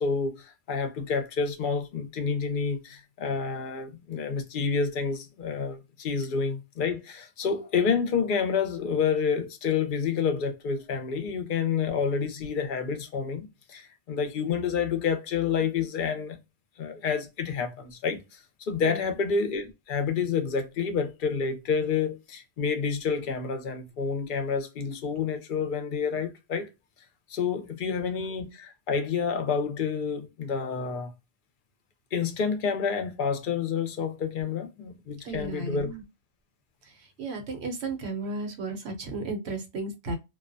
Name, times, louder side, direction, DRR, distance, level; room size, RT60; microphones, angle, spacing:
voice 1, 0.0-16.4 16.8-26.7 27.3-31.1 32.1-35.9, left 6 dB, 55° left, 0.7 m, -29 dB
voice 2, 18.8-19.1 27.8-28.3 35.2-36.0 36.8-40.2, right 3 dB, 70° right, 1.0 m, -35 dB
2.3 x 2.1 x 2.5 m
omnidirectional pair, 1.1 m